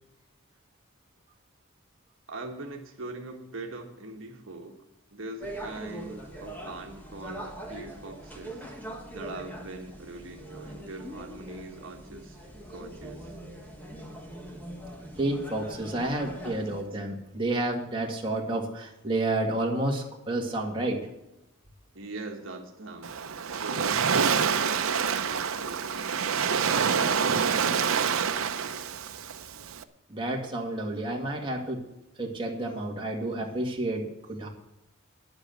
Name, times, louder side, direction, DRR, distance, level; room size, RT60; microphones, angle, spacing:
voice 1, 2.3-4.8 5.1-8.7 9.1-13.3 21.9-24.0 24.3-28.5, right 2 dB, 65° right, 2 dB, 1.4 m, -42 dB
sound 1, 5.4-16.8, right 1 dB, 10° left, 1.8 m, -42 dB
voice 2, 15.2-21.1 30.1-31.8 32.2-34.5, right 2 dB, 25° right, -1 dB, 2.1 m, -30 dB
Waves surf, 23.0-29.8, right 6 dB, 80° right, 0.7 m, -27 dB
10.5 x 8.2 x 7.9 m, 0.89 s
head